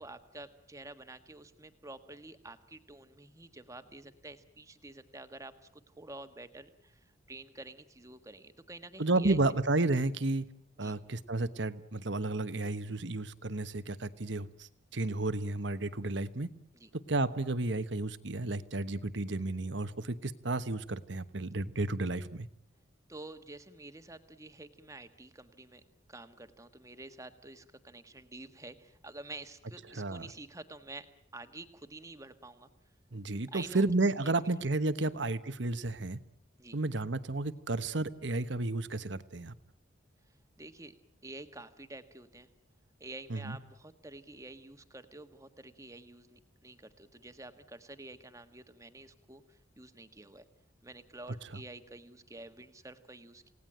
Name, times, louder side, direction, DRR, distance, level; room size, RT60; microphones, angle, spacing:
voice 1, 0.0-9.4 10.8-10.9 16.7-16.9 23.1-25.8 26.1-32.7 33.5-33.8 34.2-34.5 36.6-36.8 40.3-40.9 41.2-42.5 43.0-50.5 50.8-53.5, right 2 dB, 15° right, 9 dB, 1.6 m, -49 dB
voice 2, 9.0-10.5 10.8-16.5 17.1-22.5 30.0-30.3 33.1-36.2 36.7-39.5 43.3-43.6 51.5-51.6, right 2 dB, 65° right, 13 dB, 1.2 m, -32 dB
28.5 x 18.0 x 9.0 m, 0.70 s
head